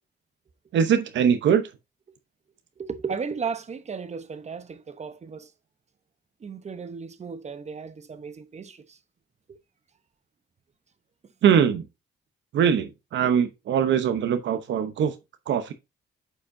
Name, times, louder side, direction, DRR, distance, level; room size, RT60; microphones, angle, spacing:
voice 1, 0.7-1.6 11.4-11.9 12.5-15.1 15.5-15.7, right 8 dB, 70° right, 0.9 m, -22 dB
voice 2, 2.8-5.5 6.4-9.0 9.5-9.6, right 5 dB, 35° right, 0.9 m, -35 dB
8.6 x 5.2 x 2.7 m
cardioid pair, 90°, 20 cm